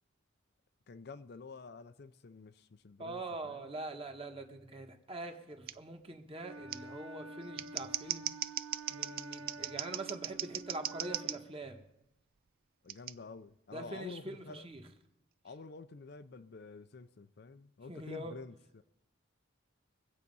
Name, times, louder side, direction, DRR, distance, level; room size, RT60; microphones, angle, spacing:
voice 1, 0.9-3.7 12.8-14.7 15.4-18.8, left 3 dB, 55° left, 0.5 m, -49 dB
voice 2, 3.0-8.3 8.9-11.8 13.7-14.8 17.9-18.3, right 2 dB, 30° right, 1.4 m, -43 dB
Scissors, 5.7-5.8 6.7-6.8 7.4-11.4 12.9-13.1, right 13 dB, 45° right, 0.4 m, -38 dB
Wind instrument woodwind instrument, 6.4-11.5, right 2 dB, 85° right, 1.6 m, -49 dB
22.0 x 8.2 x 5.4 m
head